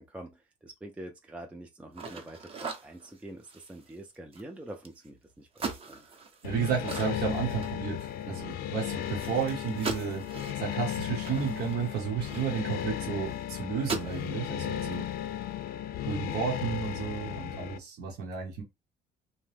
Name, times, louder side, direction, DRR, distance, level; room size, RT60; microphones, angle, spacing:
voice 1, 0.0-6.1 8.3-8.5, right 1 dB, 5° right, 0.4 m, -46 dB
sound 1, 1.9-5.1 5.5-8.2 8.5-8.6 8.9-12.8 13.3-13.4 13.7-14.3, right 4 dB, 35° right, 0.7 m, -40 dB
sound 2, 6.4-17.8, left 11 dB, 65° left, 0.4 m, -35 dB
voice 2, 6.4-15.1 16.1-18.6, right 7 dB, 75° right, 0.9 m, -32 dB
2.8 x 2.1 x 3.2 m
cardioid pair, 110°, 17 cm